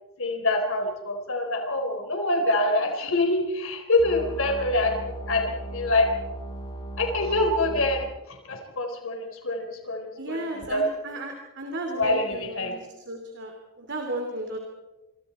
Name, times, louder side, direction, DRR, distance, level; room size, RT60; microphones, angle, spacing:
voice 1, 0.2-6.1 7.0-8.0 8.5-10.8 12.0-12.7, left 2 dB, 65° left, 4 dB, 4.1 m, -25 dB
sound 1, 4.0-8.0, right 1 dB, 25° left, 6.6 m, -37 dB
voice 2, 10.2-14.6, right 1 dB, 55° right, 3 dB, 3.0 m, -34 dB
28.0 x 25.5 x 4.4 m, 1.1 s
head